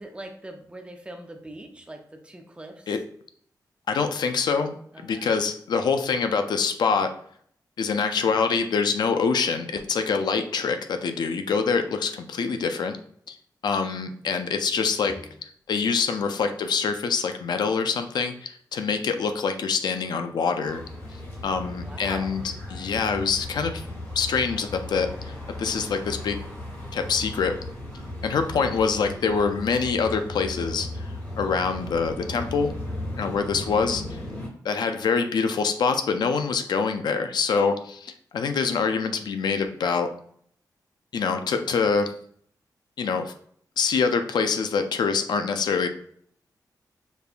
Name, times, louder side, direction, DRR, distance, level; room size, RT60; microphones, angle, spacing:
voice 1, 0.0-2.9 4.9-5.2 15.1-15.3 21.5-22.5, right 1 dB, 15° right, 3 dB, 0.5 m, -42 dB
voice 2, 3.9-4.8 5.0-7.1 7.8-13.0 13.3-13.4 13.6-15.1 15.7-20.8 21.4-23.8 24.1-26.4 26.9-27.5 28.2-32.7 33.1-34.2 34.6-40.1 41.1-42.1 43.0-43.3 43.8-45.9, left 5 dB, 75° left, 7 dB, 0.4 m, -25 dB
sound 1, 20.7-34.5, left 1 dB, 30° left, 1.1 m, -36 dB
5.2 x 2.2 x 2.4 m, 0.62 s
wide cardioid pair, 130°, 7 cm